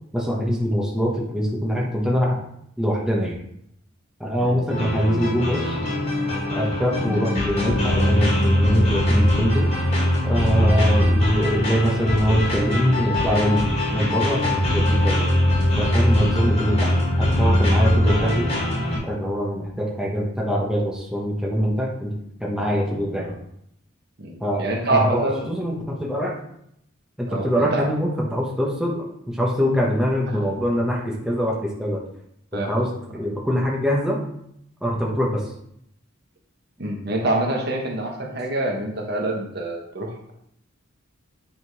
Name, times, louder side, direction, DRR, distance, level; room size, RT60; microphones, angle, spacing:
voice 1, 0.1-2.4 2.8-3.4 4.2-5.8 6.5-9.7 10.2-13.6 13.9-15.3 15.8-18.5 19.0-22.1 22.4-23.4 24.4-24.6 24.9-26.3 27.2-32.0 32.5-34.2 34.8-35.5, equal, 5° right, -3 dB, 1.1 m, -23 dB
voice 2, 4.4-4.8 22.6-23.2 24.2-25.5 27.3-27.9 32.5-32.8 36.8-40.3, right 2 dB, 55° right, 1 dB, 1.3 m, -26 dB
sound 1, 4.7-19.0, left 1 dB, 35° left, 2.8 m, -21 dB
8.7 x 3.8 x 4.8 m, 0.73 s
head